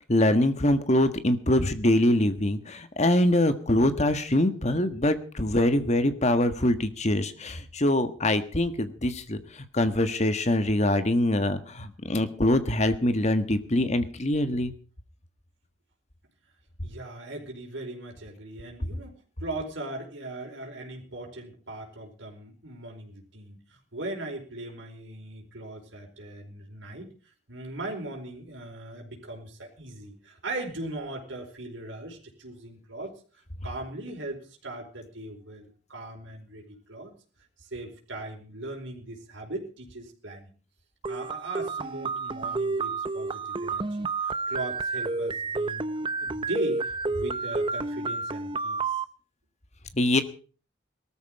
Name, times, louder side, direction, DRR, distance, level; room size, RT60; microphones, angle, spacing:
voice 1, 0.1-9.4 9.7-14.7 49.9-50.2, left 1 dB, 35° left, 10 dB, 1.5 m, -24 dB
voice 2, 16.8-27.1 27.5-33.1 33.6-37.1 37.6-40.5 41.1-48.8, right 2 dB, 80° right, 1 dB, 4.8 m, -39 dB
sound 1, 41.0-49.0, right 3 dB, 25° right, 0.6 m, -30 dB
18.5 x 13.5 x 4.8 m, 0.39 s
head